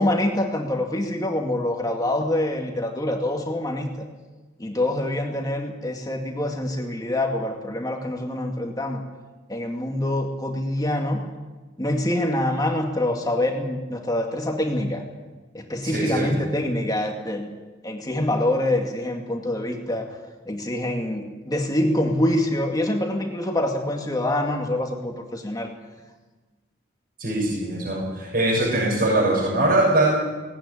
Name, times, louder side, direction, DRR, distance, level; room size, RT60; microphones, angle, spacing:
voice 1, 0.0-3.9 4.6-9.0 9.5-11.2 11.8-15.0 15.5-17.5 17.8-20.2 20.5-25.7, left 1 dB, 20° left, 2 dB, 2.1 m, -25 dB
voice 2, 15.8-16.3 27.2-30.1, right 2 dB, 55° right, -4 dB, 6.8 m, -22 dB
18.5 x 18.0 x 9.9 m, 1.2 s
head